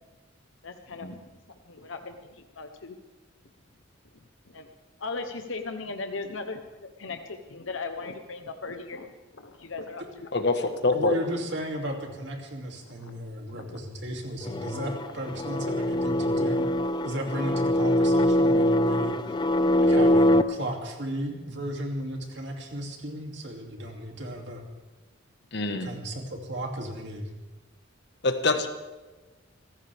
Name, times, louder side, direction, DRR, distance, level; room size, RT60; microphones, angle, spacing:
voice 1, 0.6-1.1 1.7-2.9 4.5-4.7 5.0-6.6 7.0-10.3 13.0-13.2 13.5-13.8, left 3 dB, 75° left, 6 dB, 1.0 m, -37 dB
voice 2, 10.3-11.2 25.5-25.9 28.2-28.7, left 3 dB, 55° left, 7 dB, 1.5 m, -25 dB
voice 3, 10.9-16.7 17.0-19.4 19.8-24.6 25.8-27.3, right 1 dB, 60° right, 1 dB, 2.8 m, -34 dB
sound 1, 14.5-20.4, left 1 dB, 20° left, 0.4 m, -23 dB
26.5 x 14.5 x 3.6 m, 1.2 s
head